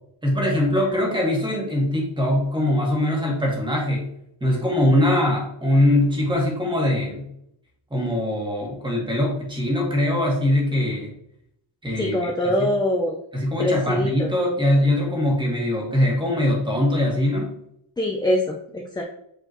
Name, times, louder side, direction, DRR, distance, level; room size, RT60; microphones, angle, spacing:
voice 1, 0.2-4.1 4.4-7.3 7.9-11.1 11.8-12.7 13.3-17.6, left 1 dB, 10° right, -2 dB, 1.8 m, -22 dB
voice 2, 12.0-13.2 13.6-14.3 18.0-19.0, left 1 dB, 10° left, 0 dB, 0.5 m, -23 dB
7.8 x 4.2 x 3.0 m, 0.72 s
cardioid pair, 160°, 43 cm